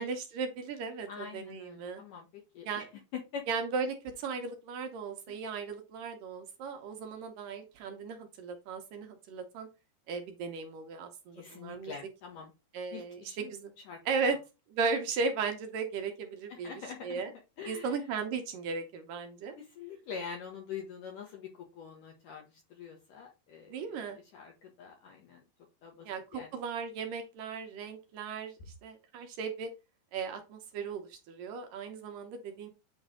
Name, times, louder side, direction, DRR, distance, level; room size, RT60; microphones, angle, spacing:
voice 1, 0.0-2.0 2.7-2.9 3.5-9.7 10.1-11.9 12.7-13.7 14.1-14.4 14.7-17.3 17.6-19.5 23.7-24.2 26.0-28.5 28.8-29.7 30.1-32.7, right 5 dB, 75° right, 5 dB, 2.1 m, -36 dB
voice 2, 1.1-2.8 3.3-3.4 11.3-12.5 12.9-13.5 13.9-14.0 16.5-17.2 17.6-18.0 19.6-21.5 21.8-22.4 22.7-23.8 24.3-25.4 25.8-26.1 26.3-26.5, left 6 dB, 65° left, 1 dB, 2.2 m, -44 dB
9.1 x 3.2 x 3.7 m, 0.28 s
omnidirectional pair, 4.8 m